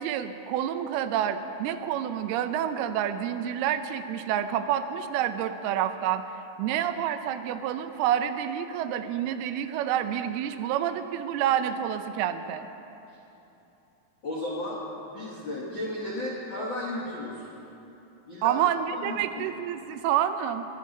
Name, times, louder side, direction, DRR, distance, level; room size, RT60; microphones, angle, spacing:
voice 1, 0.0-6.2 6.6-12.7 18.4-20.7, right 10 dB, 80° right, 10 dB, 2.5 m, -28 dB
voice 2, 14.2-14.8 15.1-17.5 18.3-18.6 19.0-19.5, left 1 dB, 65° left, -5 dB, 1.2 m, -34 dB
22.0 x 9.4 x 5.2 m, 2.9 s
omnidirectional pair, 4.6 m